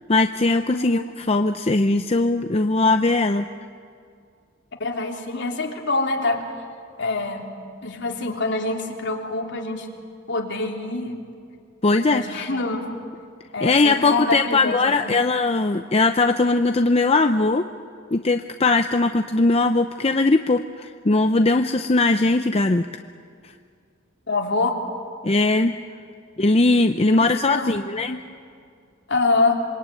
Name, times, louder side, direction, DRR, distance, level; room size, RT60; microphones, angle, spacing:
voice 1, 0.1-3.4 11.8-12.5 13.6-17.6 18.1-22.9 25.2-25.7 26.4-28.2, left 2 dB, 30° left, 7 dB, 0.6 m, -20 dB
voice 2, 4.8-6.4 7.0-7.5 7.8-9.9 10.3-11.2 12.1-13.0 13.5-15.2 24.3-24.8 27.2-27.9 29.1-29.6, left 3 dB, 60° left, 1 dB, 3.4 m, -25 dB
27.0 x 23.5 x 9.1 m, 2.3 s
head